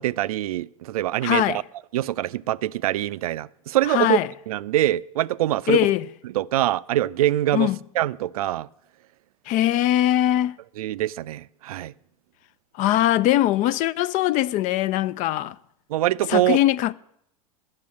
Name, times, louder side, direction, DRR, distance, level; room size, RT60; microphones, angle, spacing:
voice 1, 0.0-1.6 1.9-4.2 4.5-5.9 6.3-7.7 8.0-8.7 10.8-11.9 15.9-16.6, right 14 dB, 80° right, 0.4 m, -24 dB
voice 2, 1.2-1.6 3.9-4.3 5.7-6.0 7.5-7.8 9.5-10.5 12.8-15.6 16.3-16.9, left 13 dB, 45° left, 0.4 m, -21 dB
10.5 x 6.4 x 8.5 m
hypercardioid pair, 100°, 18 cm